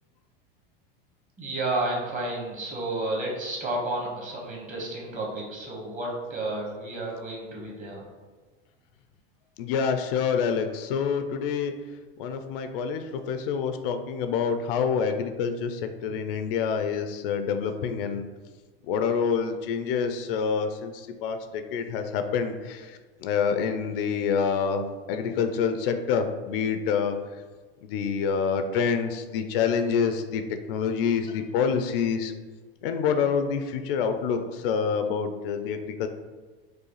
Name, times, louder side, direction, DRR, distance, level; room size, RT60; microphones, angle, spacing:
voice 1, 1.4-8.0, right 2 dB, 25° right, -3 dB, 1.3 m, -31 dB
voice 2, 9.6-11.7 12.2-18.3 18.9-27.2 27.8-30.4 30.7-32.3 32.8-36.1, left 6 dB, 65° left, 7 dB, 0.4 m, -27 dB
4.7 x 2.3 x 3.0 m, 1.4 s
hypercardioid pair, 105°, 30 cm